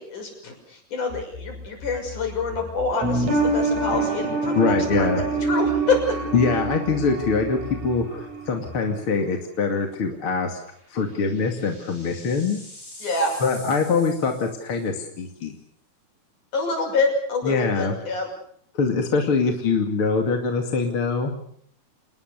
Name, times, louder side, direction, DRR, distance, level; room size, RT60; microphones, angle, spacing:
voice 1, 0.0-5.1 5.4-6.0 13.0-13.4 16.5-18.3, left 3 dB, 55° left, 3 dB, 7.7 m, -26 dB
sound 1, 1.1-8.8, left 3 dB, 80° left, 9.0 m, -39 dB
sound 2, 3.0-8.5 8.8-8.9, right 3 dB, 45° right, 5.4 m, -26 dB
voice 2, 4.5-5.2 6.3-10.6 10.9-12.6 13.4-15.6 17.4-18.0 18.7-21.3, left 4 dB, 40° left, 3 dB, 2.9 m, -23 dB
sound 3, 8.4-8.5 8.9-9.0 10.4-15.1, left 1 dB, 15° left, 7.8 m, -45 dB
28.0 x 20.0 x 6.8 m, 0.63 s
omnidirectional pair, 4.3 m